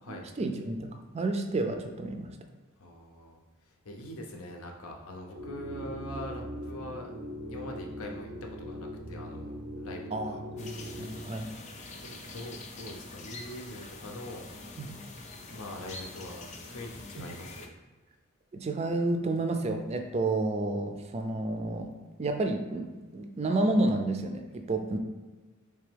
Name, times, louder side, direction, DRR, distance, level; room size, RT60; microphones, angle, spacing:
voice 1, 0.4-2.3 10.1-10.7 11.0-11.5 14.8-14.9 17.2-17.3 18.5-21.9 22.2-25.0, right 2 dB, 30° right, 6 dB, 0.4 m, -30 dB
voice 2, 2.8-7.1 7.5-9.5 9.8-11.3 12.0-14.5 14.7-14.8 15.2-17.7, left 1 dB, 80° left, 2 dB, 0.7 m, -43 dB
sound 1, 5.3-11.2, equal, 90° right, 0.6 m, -40 dB
sound 2, 10.6-17.7, left 2 dB, 35° left, 0.4 m, -45 dB
3.4 x 3.4 x 3.4 m, 1.3 s
head